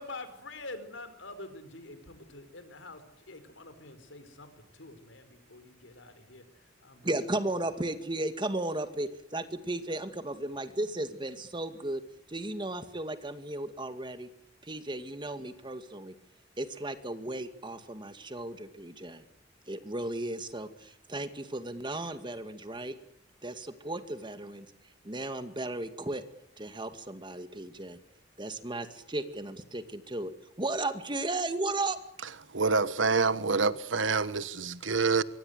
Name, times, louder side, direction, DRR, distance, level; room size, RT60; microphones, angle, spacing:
voice 1, 0.0-7.1, left 2 dB, 80° left, 4.6 m, -46 dB
voice 2, 7.0-12.0 12.3-14.3 14.6-16.1 16.6-19.2 19.7-22.9 23.4-24.7 25.0-26.2 26.6-28.0 28.4-32.0, right 2 dB, 25° right, 2.2 m, -35 dB
voice 3, 32.5-35.2, right 4 dB, 85° right, 1.4 m, -27 dB
25.5 x 23.5 x 8.2 m
head